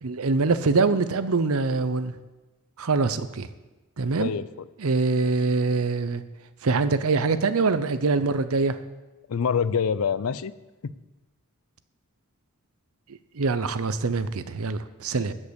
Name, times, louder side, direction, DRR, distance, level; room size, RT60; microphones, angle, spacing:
voice 1, 0.0-2.1 2.8-3.5 4.0-4.3 4.8-6.2 6.6-8.8 13.3-15.3, right 4 dB, 70° right, 12 dB, 0.7 m, -24 dB
voice 2, 4.1-4.7 5.2-5.3 9.3-10.5 10.8-10.9 15.2-15.3, left 6 dB, 75° left, 16 dB, 0.5 m, -26 dB
13.0 x 5.5 x 8.1 m, 1.1 s
head